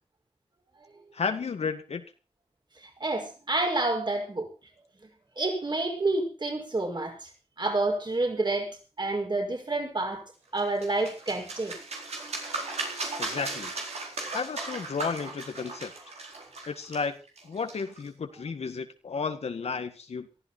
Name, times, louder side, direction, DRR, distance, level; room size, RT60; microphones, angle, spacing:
voice 1, 1.1-2.0 13.2-13.7 14.3-15.9 16.6-17.2 17.4-20.3, left 5 dB, 75° left, 7 dB, 1.7 m, -33 dB
voice 2, 3.0-4.5 5.4-7.1 7.6-10.2 10.5-11.7, right 2 dB, 45° right, 2 dB, 6.0 m, -28 dB
sound 1, 10.6-18.1, right 3 dB, 80° right, 4.3 m, -37 dB
18.5 x 13.0 x 4.4 m, 0.34 s
cardioid pair, 45°, 11 cm